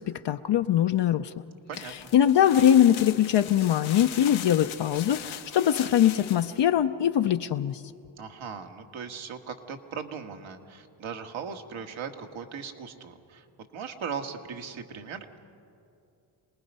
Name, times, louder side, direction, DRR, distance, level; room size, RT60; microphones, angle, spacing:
voice 1, 0.0-1.3 1.8-7.8, left 10 dB, 60° left, 7 dB, 0.7 m, -22 dB
sound 1, 1.7-6.6, left 10 dB, 80° left, 1.2 m, -40 dB
voice 2, 8.2-13.4 13.7-15.4, right 6 dB, 75° right, 4 dB, 1.8 m, -38 dB
27.0 x 19.5 x 5.5 m, 2.6 s
supercardioid pair, 50°, 47 cm